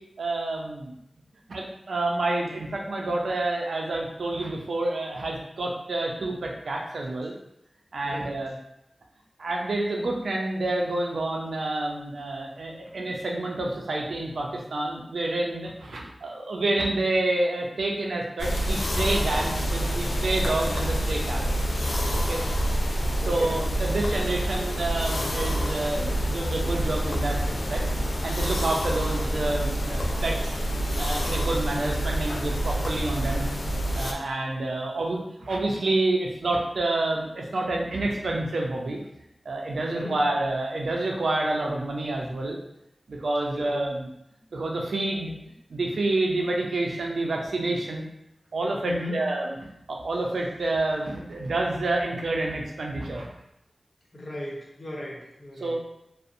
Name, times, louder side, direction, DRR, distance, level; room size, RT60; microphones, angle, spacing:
voice 1, 0.2-0.9 1.5-7.3 7.9-8.5 9.4-21.4 22.1-22.4 23.3-27.4 27.7-27.8 28.2-30.6 31.0-33.5 34.0-39.0 39.5-42.6 43.1-44.1 44.5-45.3 45.7-48.1 48.5-49.6 49.9-53.3 55.6-55.7, right 2 dB, 85° right, 0 dB, 0.4 m, -28 dB
voice 2, 8.0-8.4 23.2-23.6 39.8-40.2 43.5-43.8 48.8-49.3 54.1-55.7, left 1 dB, 45° left, -4 dB, 0.8 m, -37 dB
sound 1, 18.4-34.1, equal, 65° left, 0.3 m, -27 dB
2.5 x 2.0 x 2.5 m, 0.81 s
cardioid pair, 40°, 0 cm